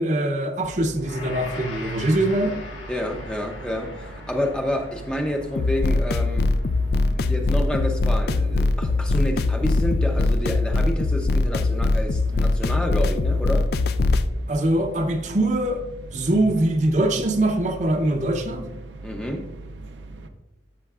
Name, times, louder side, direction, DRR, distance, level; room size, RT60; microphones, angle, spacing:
voice 1, 0.0-2.6 14.5-15.8 16.1-18.7, right 1 dB, 40° right, 0.7 m, -22 dB
sound 1, 0.6-20.3, right 2 dB, 75° right, 0.7 m, -40 dB
Gong, 1.0-10.4, left 2 dB, 80° left, 2.8 m, -43 dB
voice 2, 2.9-6.5 7.1-13.7 19.0-19.5, left 1 dB, 5° left, 0.6 m, -29 dB
sound 2, 5.6-14.3, left 2 dB, 55° left, 0.4 m, -21 dB
13.5 x 6.8 x 2.4 m
head